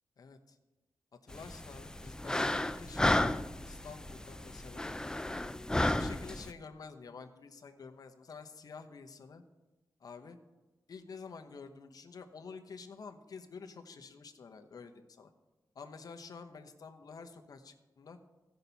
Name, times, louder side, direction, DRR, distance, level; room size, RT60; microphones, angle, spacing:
voice 1, 0.2-0.6 1.2-4.9 5.7-9.4 10.0-10.4 10.9-15.3 15.7-18.2, left 5 dB, 55° left, 5 dB, 1.0 m, -49 dB
sound 1, 1.3-6.5, left 1 dB, 10° left, 0.4 m, -33 dB
16.5 x 5.7 x 4.1 m, 1.1 s
wide cardioid pair, 105°, 7 cm